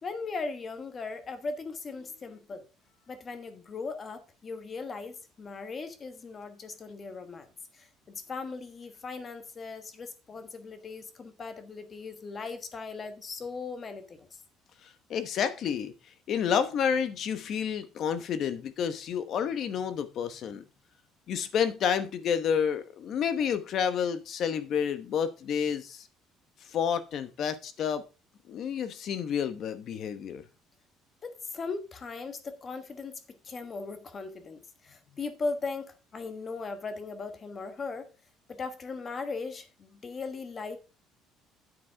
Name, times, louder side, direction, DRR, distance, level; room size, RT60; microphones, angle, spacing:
voice 1, 0.0-2.6 3.1-7.5 7.7-14.4 31.2-38.1 38.5-40.8, left 4 dB, 25° left, 1.2 m, -38 dB
voice 2, 15.1-15.9 16.3-20.6 21.3-26.1 26.7-28.0 28.5-30.4, left 7 dB, 40° left, 1.0 m, -29 dB
9.5 x 8.0 x 3.4 m
cardioid pair, 175°, 0 cm